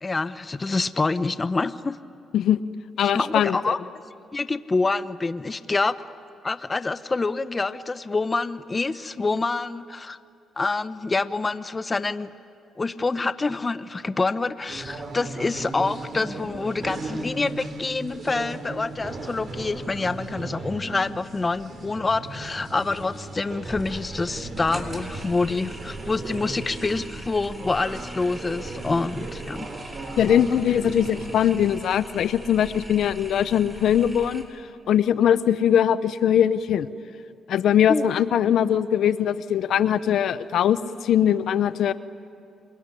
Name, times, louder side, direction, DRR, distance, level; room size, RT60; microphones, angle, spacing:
voice 1, 0.0-2.0 3.0-3.8 4.3-5.9 6.4-10.2 10.6-12.3 12.8-29.7 37.9-38.1, left 3 dB, 25° left, 13 dB, 0.8 m, -26 dB
voice 2, 3.0-3.7 30.2-34.4 34.9-36.9 37.5-41.9, left 9 dB, 70° left, 14 dB, 0.8 m, -21 dB
sound 1, 14.7-31.5, right 2 dB, 45° right, 3.9 m, -37 dB
sound 2, 23.6-34.4, right 1 dB, 15° right, 3.9 m, -41 dB
26.5 x 22.0 x 9.9 m, 2.4 s
cardioid pair, 90°, 0 cm